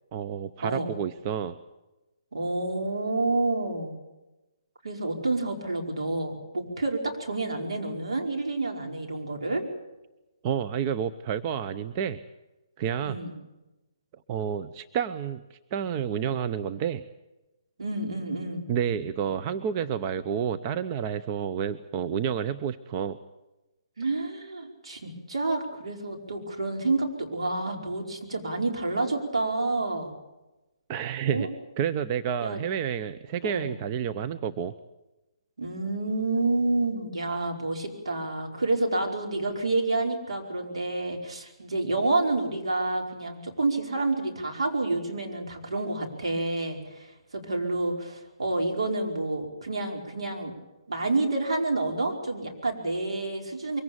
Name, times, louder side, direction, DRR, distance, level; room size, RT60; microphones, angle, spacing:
voice 1, 0.1-1.6 10.4-12.2 12.8-13.2 14.3-15.4 15.7-17.0 18.7-23.2 30.9-31.5 31.8-34.7, right 8 dB, 30° right, 10 dB, 0.8 m, -29 dB
voice 2, 2.3-3.9 4.8-9.6 13.0-13.4 17.8-18.7 24.0-30.1 31.2-31.5 32.4-32.6 33.4-33.7 35.6-50.5 50.9-53.8, right 2 dB, 80° right, 2 dB, 5.0 m, -29 dB
23.5 x 17.0 x 8.9 m, 1.0 s
figure-of-eight pair, 140°, 3 cm